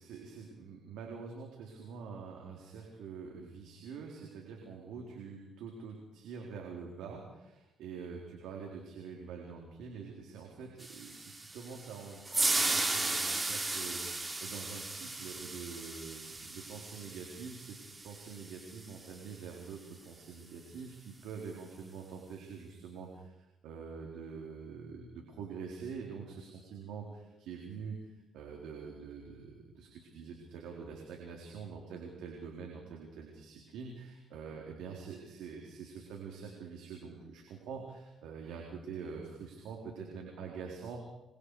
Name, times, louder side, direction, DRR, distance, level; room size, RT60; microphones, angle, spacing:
voice 1, 0.0-17.8 18.0-41.0, right 5 dB, 90° right, 0 dB, 4.1 m, -45 dB
sound 1, 10.8-19.1, right 2 dB, 25° right, 3.5 m, -36 dB
28.0 x 24.5 x 5.0 m, 0.96 s
cardioid pair, 90°, 0 cm